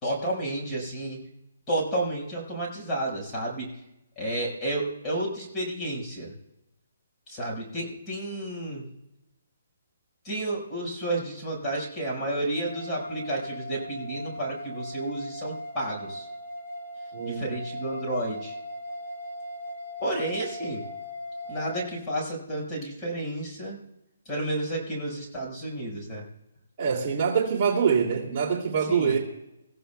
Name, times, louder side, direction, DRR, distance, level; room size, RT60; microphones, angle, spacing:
voice 1, 0.0-1.2 1.7-3.7 4.2-6.3 7.3-8.9 10.2-16.3 17.3-18.6 20.0-20.8 21.5-23.8 24.3-26.2 28.9-29.2, right 1 dB, 15° left, -3 dB, 5.2 m, -31 dB
sound 1, 12.5-21.9, equal, 50° left, 6.3 m, -39 dB
voice 2, 17.1-17.4 26.8-29.2, right 6 dB, 30° right, -4 dB, 2.7 m, -24 dB
27.5 x 15.0 x 2.3 m, 0.89 s
hypercardioid pair, 165°, 0 cm